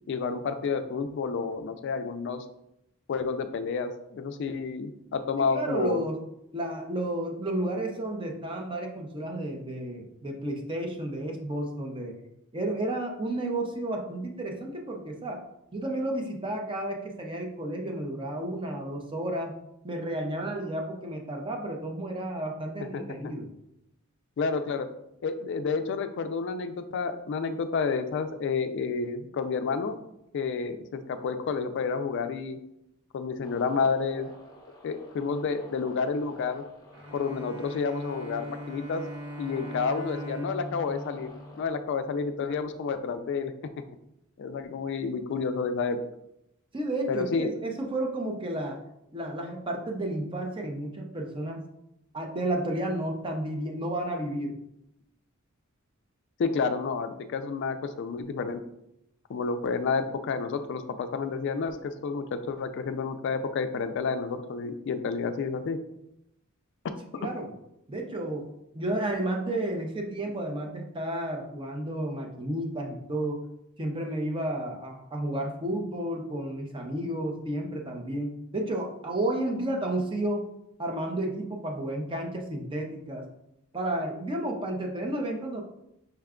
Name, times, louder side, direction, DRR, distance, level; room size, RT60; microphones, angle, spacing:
voice 1, 0.1-2.4 3.1-6.0 22.9-23.3 24.4-24.9 25.2-30.0 30.3-32.6 33.1-34.3 34.8-36.6 37.1-39.0 39.4-41.3 41.6-43.5 44.4-46.0 47.1-47.5 56.4-58.6 59.3-65.8 67.1-67.3, left 5 dB, 55° left, 9 dB, 0.3 m, -30 dB
voice 2, 5.4-6.2 6.5-12.2 12.5-15.4 15.7-19.5 19.8-23.5 46.7-48.8 49.1-51.6 52.1-54.5 67.2-67.5 67.9-68.5 68.7-73.4 73.8-80.5 80.8-83.2 83.7-85.6, right 1 dB, 25° right, 2 dB, 0.6 m, -32 dB
sound 1, 33.4-41.7, left 2 dB, 15° left, 0.6 m, -50 dB
Bowed string instrument, 36.9-42.3, equal, 75° right, 0.9 m, -40 dB
5.7 x 2.2 x 3.6 m, 0.82 s
head